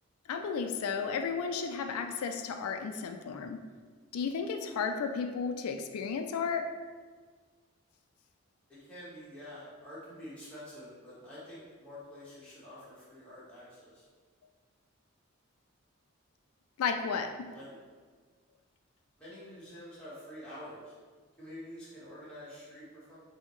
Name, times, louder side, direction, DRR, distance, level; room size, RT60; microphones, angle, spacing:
voice 1, 0.3-3.7 4.1-6.8 16.8-17.5, left 5 dB, 85° left, 6 dB, 0.3 m, -33 dB
voice 2, 8.7-14.0 17.5-17.6 19.2-20.8 21.4-23.2, left 1 dB, 5° left, -10 dB, 1.3 m, -47 dB
5.5 x 2.8 x 3.1 m, 1.5 s
head